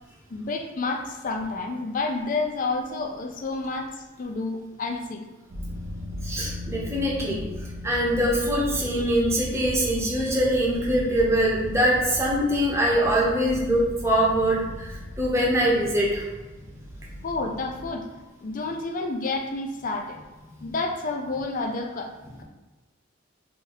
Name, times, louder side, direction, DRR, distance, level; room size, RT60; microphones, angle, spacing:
voice 1, 0.3-5.2 17.2-18.1 18.4-20.2 20.6-22.1, left 3 dB, 45° left, 3 dB, 0.4 m, -30 dB
sound 1, 5.5-18.0, left 1 dB, 45° right, 0.7 m, -37 dB
voice 2, 6.2-7.4 7.8-16.2, equal, 15° right, -4 dB, 0.8 m, -23 dB
2.9 x 2.6 x 3.9 m, 1.2 s
head